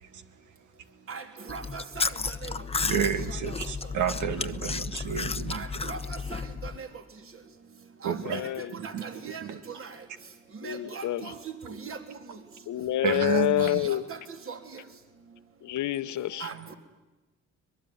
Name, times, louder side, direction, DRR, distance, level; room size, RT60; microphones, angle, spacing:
Chewing mastication, 1.5-6.8, left 4 dB, 20° left, 0.9 m, -33 dB
voice 1, 1.5-2.5 5.5-6.0 6.3-6.9 8.0-8.4 8.8-9.4 9.8-9.9 10.6-11.3 11.7-12.0 13.1-13.2 13.6-14.2 14.5-14.6 16.4-16.7, right 5 dB, 45° right, 6 dB, 3.3 m, -39 dB
voice 2, 2.9-5.6 8.0-8.4 8.8-9.1 9.4-9.6 13.0-13.9 16.5-16.7, right 8 dB, 75° right, 10 dB, 2.0 m, -31 dB
voice 3, 8.2-8.7 10.6-11.3 12.7-14.0 15.6-16.5, left 14 dB, 75° left, 13 dB, 1.0 m, -28 dB
22.5 x 21.5 x 9.4 m, 1.1 s
cardioid pair, 90°, 30 cm